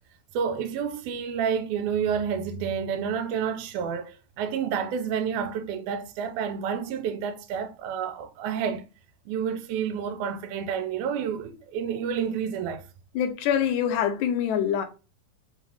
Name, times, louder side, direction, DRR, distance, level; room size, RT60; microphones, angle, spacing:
voice 1, 0.3-8.8 9.3-12.8, right 7 dB, 80° right, 2.1 m, -29 dB
voice 2, 13.2-14.9, left 9 dB, 75° left, 2.0 m, -25 dB
5.3 x 2.4 x 3.3 m
omnidirectional pair, 3.5 m